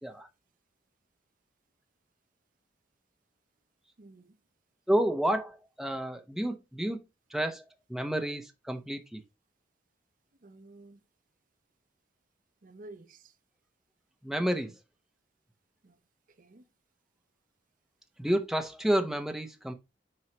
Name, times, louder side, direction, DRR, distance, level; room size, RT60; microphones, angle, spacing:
voice 1, 4.0-4.4 10.4-11.0 12.6-13.4 15.8-16.0 16.3-16.6, right 2 dB, 50° right, 0.7 m, -51 dB
voice 2, 4.9-7.0 7.3-7.6 7.9-9.2 14.2-14.8 18.2-19.7, right 1 dB, ahead, 0.9 m, -30 dB
7.6 x 4.7 x 2.9 m
head